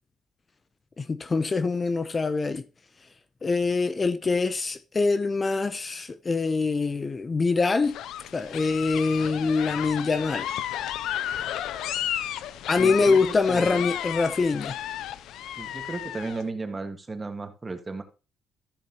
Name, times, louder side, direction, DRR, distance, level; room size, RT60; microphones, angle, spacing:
voice 1, 1.0-2.6 3.4-7.9 8.3-10.5 12.7-14.8, left 4 dB, 30° left, 0.6 m, -24 dB
sound 1, 7.8-16.4, left 11 dB, 85° left, 0.5 m, -33 dB
voice 2, 12.8-13.9 15.6-18.0, right 3 dB, 25° right, 1.6 m, -34 dB
13.5 x 7.1 x 2.9 m
cardioid pair, 90°, 0 cm